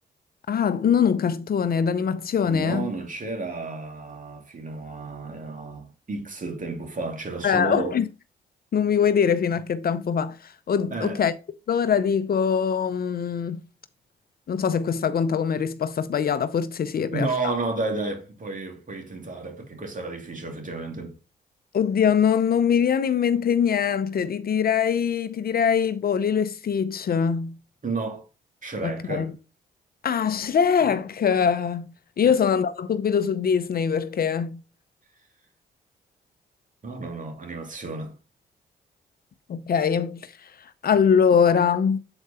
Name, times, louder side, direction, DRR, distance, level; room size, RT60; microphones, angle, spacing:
voice 1, 0.5-2.9 7.4-8.1 8.7-11.3 11.7-13.6 14.5-17.5 21.7-27.5 28.8-29.3 30.0-31.8 32.2-34.6 39.5-40.5 40.8-42.0, left 7 dB, 55° left, 0.7 m, -23 dB
voice 2, 2.5-8.0 10.9-11.2 17.0-21.2 27.8-28.2 28.6-29.3 32.2-32.4 36.8-38.1, right 3 dB, 45° right, 2.6 m, -32 dB
7.9 x 4.6 x 4.2 m
supercardioid pair, 50°, 19 cm